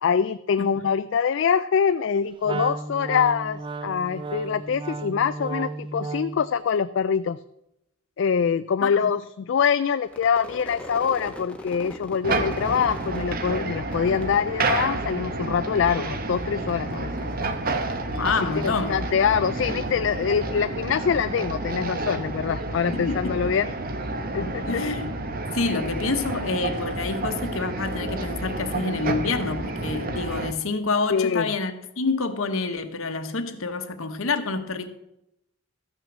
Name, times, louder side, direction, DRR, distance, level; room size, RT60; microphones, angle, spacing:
voice 1, 0.0-7.4 8.2-17.3 18.2-23.7 24.3-24.8 31.1-31.5, left 7 dB, 60° left, 0.3 m, -24 dB
Wind instrument woodwind instrument, 2.4-6.5, right 3 dB, 25° right, 0.4 m, -33 dB
Crowd / Fireworks, 10.1-15.4 15.7-16.4 16.7-20.2, left 1 dB, 5° left, 1.0 m, -42 dB
sound 1, 12.2-30.5, right 2 dB, 45° right, 0.9 m, -30 dB
voice 2, 18.1-18.9 22.9-23.6 24.4-25.1 25.5-34.9, left 3 dB, 75° left, 1.0 m, -28 dB
13.5 x 6.1 x 7.2 m
head